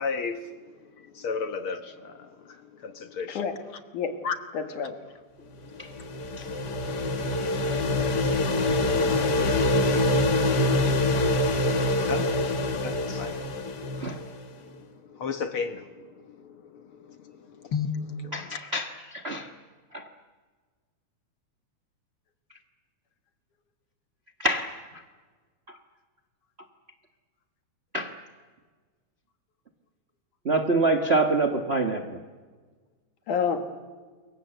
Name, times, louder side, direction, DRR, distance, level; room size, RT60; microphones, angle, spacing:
voice 1, 0.0-3.4 4.2-4.4 5.4-6.6 10.0-14.1 14.5-18.6, left 5 dB, 55° left, 8 dB, 1.7 m, -36 dB
voice 2, 3.3-3.6 3.9-4.2 4.5-5.0 33.3-33.6, left 6 dB, 75° left, 6 dB, 3.4 m, -28 dB
sound 1, 5.6-14.4, left 2 dB, 40° left, 1.8 m, -25 dB
voice 3, 18.3-19.5 19.9-20.0 24.4-24.7 27.9-28.1 30.4-32.2, right 2 dB, 55° right, 5 dB, 0.7 m, -26 dB
28.5 x 23.0 x 7.9 m, 1.5 s
omnidirectional pair, 3.6 m